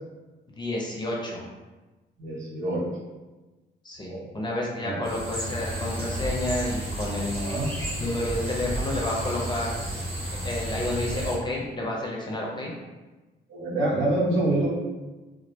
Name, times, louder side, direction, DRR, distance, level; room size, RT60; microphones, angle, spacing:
voice 1, 0.6-1.5 3.8-7.6 8.0-9.7 10.4-12.7, left 1 dB, 20° left, -3 dB, 0.6 m, -30 dB
voice 2, 2.2-2.9 4.1-4.2 4.8-5.0 7.3-7.7 13.5-14.7, right 2 dB, 80° right, -6 dB, 0.9 m, -26 dB
sound 1, 5.0-11.4, right 1 dB, 30° right, 0.7 m, -32 dB
2.3 x 2.0 x 2.7 m, 1.2 s
cardioid pair, 90°, 20 cm